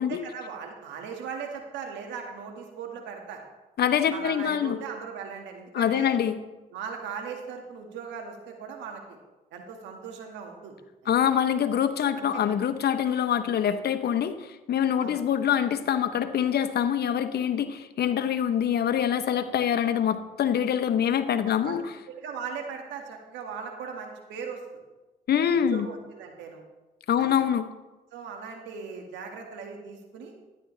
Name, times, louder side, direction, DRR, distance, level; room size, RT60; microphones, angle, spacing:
voice 1, 0.1-3.4 4.1-6.2 6.7-9.2 9.5-10.8 12.2-12.4 15.0-15.2 21.6-24.6 25.5-26.6 27.2-27.3 28.1-30.3, right 6 dB, 85° right, 2 dB, 1.9 m, -38 dB
voice 2, 3.8-4.8 5.7-6.4 11.1-21.9 25.3-25.9 27.1-27.6, left 9 dB, 65° left, 10 dB, 0.9 m, -25 dB
12.5 x 10.5 x 3.3 m, 1.1 s
supercardioid pair, 65°, 18 cm